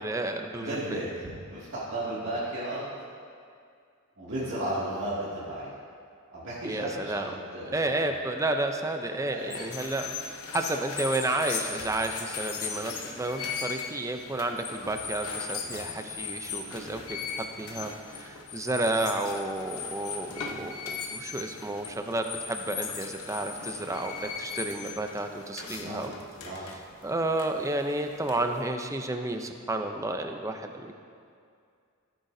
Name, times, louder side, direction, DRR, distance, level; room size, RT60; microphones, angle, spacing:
voice 1, 0.0-1.0 6.6-7.3 7.7-10.1 10.5-26.1 26.7-30.9, right 2 dB, 15° right, 5 dB, 0.5 m, -31 dB
voice 2, 0.6-2.9 4.2-5.7 6.3-8.2 9.2-9.5 15.6-15.9 20.3-20.6 25.7-26.1 26.4-26.7, right 1 dB, 60° right, -9 dB, 2.3 m, -35 dB
sound 1, 9.4-28.7, left 6 dB, 75° left, 1.0 m, -38 dB
14.5 x 8.8 x 2.7 m, 2.3 s
head